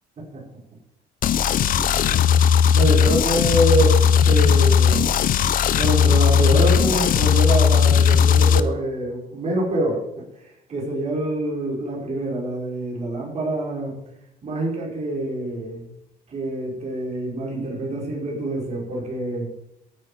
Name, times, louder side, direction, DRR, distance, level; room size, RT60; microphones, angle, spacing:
sound 1, 1.2-8.6, left 7 dB, 55° left, 0.8 m, -17 dB
voice 1, 1.8-2.2 2.7-4.0 4.2-5.2 5.7-10.0 10.4-14.0 14.4-15.9 16.3-19.5, right 1 dB, 40° right, -4 dB, 5.6 m, -26 dB
14.5 x 8.7 x 5.1 m, 0.82 s
cardioid pair, 110°, 17 cm